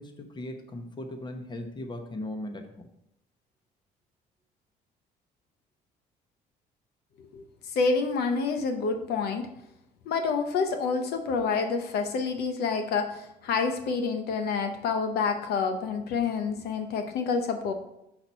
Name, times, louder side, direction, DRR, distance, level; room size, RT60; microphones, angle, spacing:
voice 1, 0.0-2.9, left 1 dB, 25° left, 5 dB, 1.0 m, -38 dB
voice 2, 7.2-9.5 10.1-17.7, left 5 dB, 75° left, 6 dB, 0.8 m, -28 dB
5.8 x 4.3 x 5.4 m, 0.83 s
cardioid pair, 110°, 17 cm